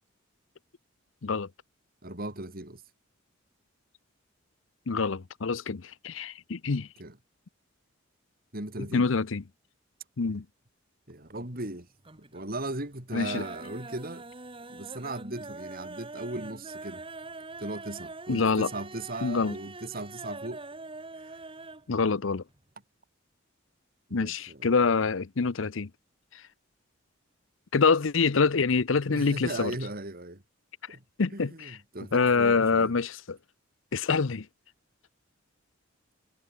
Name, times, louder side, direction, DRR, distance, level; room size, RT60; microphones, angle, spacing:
voice 1, 2.0-2.8 7.0-7.2 8.5-9.1 11.1-11.9 12.2-14.3 14.7-17.0 17.6-20.6 21.2-21.4 24.1-24.7 29.1-30.4 30.9-31.0 31.3-33.0, right 2 dB, 50° right, 5.2 m, -37 dB
voice 2, 4.9-6.9 8.9-9.4 10.2-10.4 13.1-13.4 18.3-18.7 19.2-19.5 21.9-22.4 24.1-25.9 27.7-29.7 31.2-31.5 32.1-33.4 33.9-34.5, left 4 dB, 75° left, 0.7 m, -25 dB
sound 1, 11.1-11.7 12.0-12.5 12.8-21.9 22.2-22.3 22.6-22.7, right 3 dB, 25° right, 2.8 m, -44 dB
head